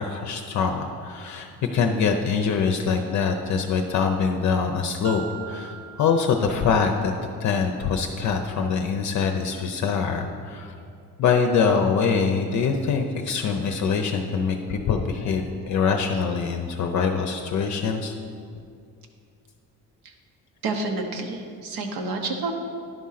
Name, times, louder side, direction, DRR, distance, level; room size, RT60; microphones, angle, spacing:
voice 1, 0.0-10.7 11.2-18.1, left 5 dB, 50° left, 4 dB, 0.6 m, -24 dB
Marimba xylophone, 5.0-7.2, right 11 dB, 25° right, 0.7 m, -42 dB
voice 2, 20.6-22.5, right 3 dB, 75° right, 4 dB, 1.1 m, -29 dB
10.5 x 3.7 x 5.7 m, 2.4 s
cardioid pair, 130°, 36 cm